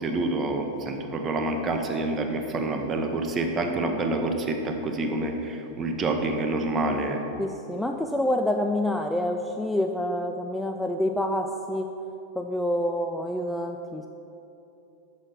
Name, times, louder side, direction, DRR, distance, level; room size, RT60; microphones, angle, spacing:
voice 1, 0.0-7.2, right 2 dB, 25° right, 4 dB, 0.8 m, -27 dB
voice 2, 7.4-11.9 12.4-14.1, left 1 dB, 5° left, 3 dB, 0.3 m, -27 dB
6.3 x 6.2 x 5.7 m, 2.9 s
figure-of-eight pair, 90°, 0 cm